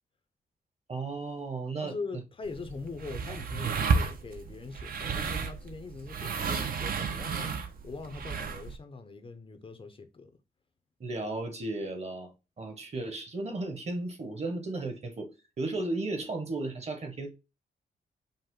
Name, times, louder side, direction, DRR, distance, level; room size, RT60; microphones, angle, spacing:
voice 1, 0.9-2.0 11.0-12.3 12.6-15.3 15.6-17.3, right 2 dB, 40° right, 1.0 m, -34 dB
voice 2, 1.8-7.6 7.8-10.4, left 4 dB, 30° left, 0.5 m, -42 dB
sound 1, 2.4-8.8, right 5 dB, 55° right, 0.6 m, -32 dB
5.4 x 2.1 x 3.6 m
wide cardioid pair, 145°, 18 cm